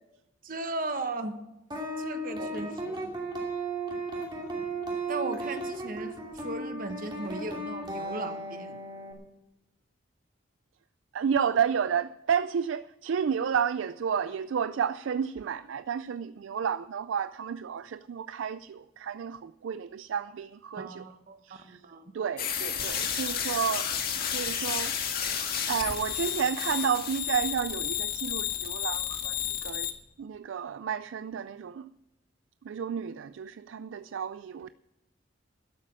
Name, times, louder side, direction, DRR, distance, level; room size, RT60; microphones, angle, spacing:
voice 1, 0.4-1.3 2.0-3.1 4.6-4.7 5.1-8.8 20.8-22.1, right 2 dB, 45° right, 1.2 m, -37 dB
sound 1, 1.7-9.1, right 2 dB, 25° right, 2.6 m, -35 dB
voice 2, 11.1-21.0 21.4-21.8 22.1-23.9 24.2-25.4 25.7-29.9 30.2-31.9 32.6-34.7, right 7 dB, 80° right, 0.4 m, -31 dB
sound 2, 22.4-29.9, left 9 dB, 50° left, 1.8 m, -31 dB
12.5 x 8.3 x 8.7 m
head